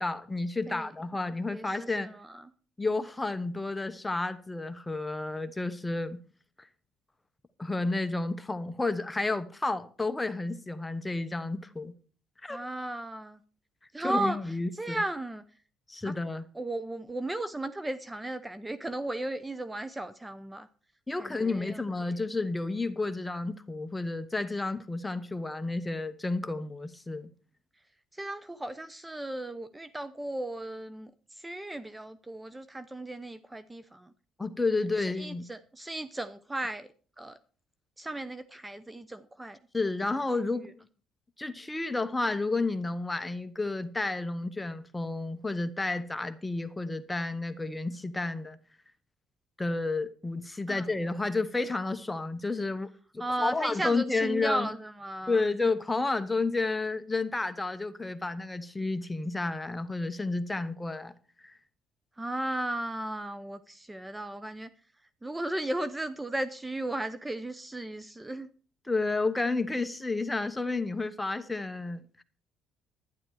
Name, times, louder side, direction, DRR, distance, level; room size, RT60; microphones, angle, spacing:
voice 1, 0.0-2.1 2.8-6.2 7.6-11.9 12.4-12.6 14.0-15.0 15.9-16.5 21.1-27.3 34.4-35.4 39.7-40.9 41.4-48.6 49.6-54.7 55.3-61.1 61.4-61.6 68.9-72.2, left 3 dB, 15° left, 1.1 m, -31 dB
voice 2, 1.5-2.4 12.5-13.4 13.9-14.4 14.8-15.4 16.0-16.1 16.5-20.7 21.2-21.8 28.1-34.1 35.2-36.9 37.2-37.4 38.0-39.6 50.7-50.9 53.2-55.4 62.2-64.7 65.2-68.5, right 1 dB, 15° right, 0.7 m, -35 dB
12.0 x 10.5 x 4.8 m
supercardioid pair, 85°, 0 cm